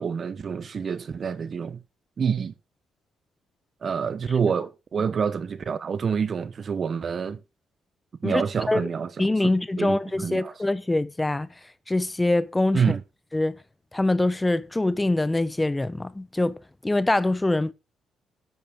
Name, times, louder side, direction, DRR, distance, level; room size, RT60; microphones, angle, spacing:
voice 1, 0.0-1.8 2.2-2.5 3.8-7.4 8.2-9.3 9.8-10.5 12.7-13.0, right 6 dB, 45° right, 0.9 m, -27 dB
voice 2, 8.2-8.9 9.2-11.5 11.9-13.0 13.3-13.6 13.9-16.6 16.8-17.7, left 2 dB, 15° left, 0.7 m, -24 dB
10.5 x 8.6 x 3.6 m
cardioid pair, 90°, 0 cm